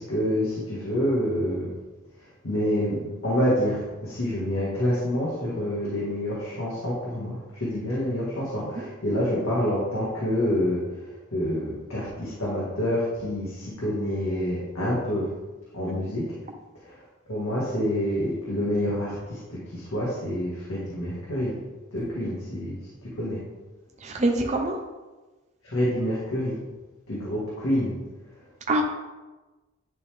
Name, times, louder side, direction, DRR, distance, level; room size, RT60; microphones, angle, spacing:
voice 1, 0.0-1.7 2.2-15.3 15.7-16.2 16.9-17.0 17.3-21.6 21.9-23.4 25.6-26.6 27.1-27.9, equal, 90° left, -8 dB, 1.9 m, -27 dB
voice 2, 24.0-24.8 28.7-28.8, right 1 dB, 35° right, 1 dB, 0.7 m, -25 dB
10.5 x 3.6 x 3.5 m, 1.2 s
head